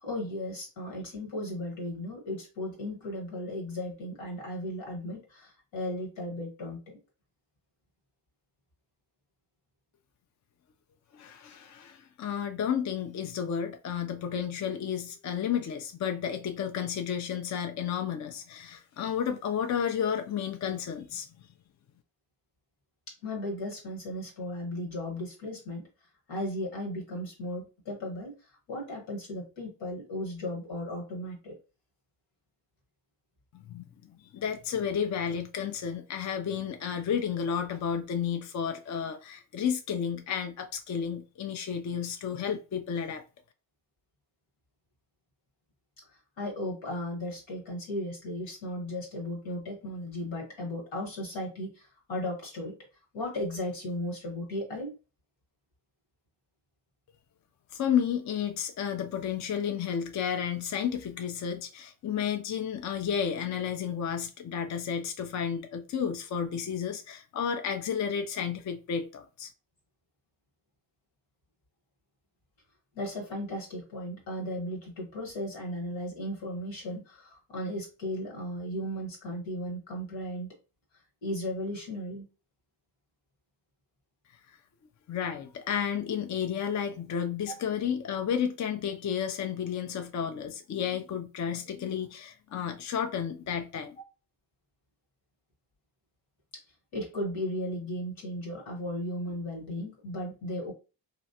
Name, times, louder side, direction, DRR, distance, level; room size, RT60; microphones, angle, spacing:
voice 1, 0.0-7.0 23.2-25.9 26.3-28.3 28.7-31.5 46.4-52.8 53.1-54.9 72.9-80.5 81.2-82.3 96.9-100.7, left 1 dB, 80° left, 1.5 m, -36 dB
voice 2, 11.1-21.3 33.5-43.2 57.7-69.5 84.5-84.6 85.1-94.0, left 8 dB, 40° left, 0.5 m, -32 dB
3.0 x 2.4 x 2.8 m
supercardioid pair, 40°, 46 cm